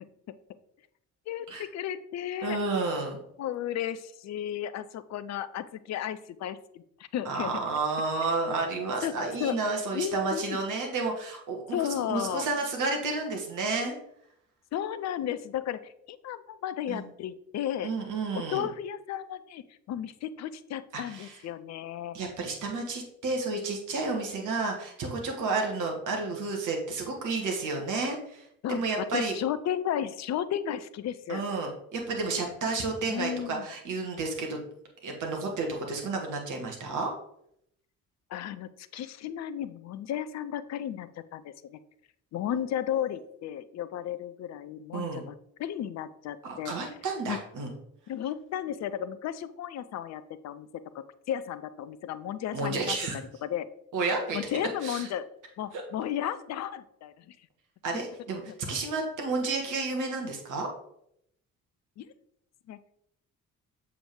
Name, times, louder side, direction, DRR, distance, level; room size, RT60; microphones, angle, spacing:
voice 1, 1.3-2.6 3.4-7.5 9.0-9.1 9.4-9.6 9.9-10.6 11.7-12.4 14.7-17.9 18.5-22.2 28.6-31.4 33.1-33.7 38.3-41.8 42.3-45.3 45.6-46.7 47.3-47.4 48.1-53.0 53.4-53.7 54.3-55.3 55.6-57.4 58.5-58.6 62.0-62.1 62.7-62.9, left 10 dB, 40° left, 15 dB, 0.5 m, -34 dB
voice 2, 2.4-3.2 7.2-13.9 16.9-17.1 17.8-18.7 20.9-21.4 22.1-29.3 31.3-34.6 35.0-37.1 44.9-45.2 46.4-47.7 52.5-53.2 53.9-54.5 54.8-55.1 55.7-55.8 57.8-58.4 58.7-60.7, right 3 dB, 45° right, 1 dB, 1.5 m, -31 dB
6.9 x 3.7 x 4.5 m, 0.74 s
figure-of-eight pair, 45°, 44 cm